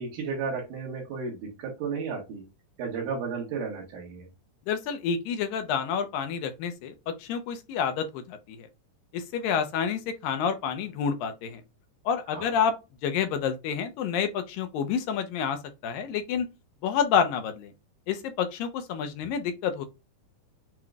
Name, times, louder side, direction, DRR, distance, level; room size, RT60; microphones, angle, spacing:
voice 1, 0.0-2.4 2.8-4.3 12.3-12.5, right 5 dB, 70° right, 2.9 m, -33 dB
voice 2, 4.7-8.7 9.1-11.6 12.1-12.7 13.0-16.5 16.8-17.7 18.1-19.9, left 7 dB, 80° left, 2.4 m, -29 dB
7.5 x 3.0 x 2.4 m
omnidirectional pair, 4.1 m